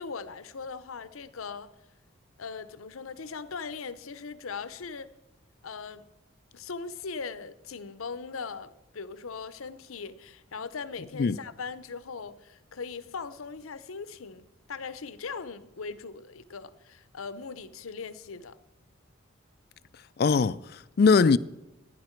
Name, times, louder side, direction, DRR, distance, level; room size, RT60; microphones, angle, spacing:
voice 1, 0.0-1.7 2.4-5.1 5.6-6.1 6.5-18.6, left 5 dB, 85° left, 0.7 m, -39 dB
voice 2, 20.2-21.4, left 5 dB, 50° left, 0.3 m, -21 dB
15.5 x 10.5 x 4.5 m
head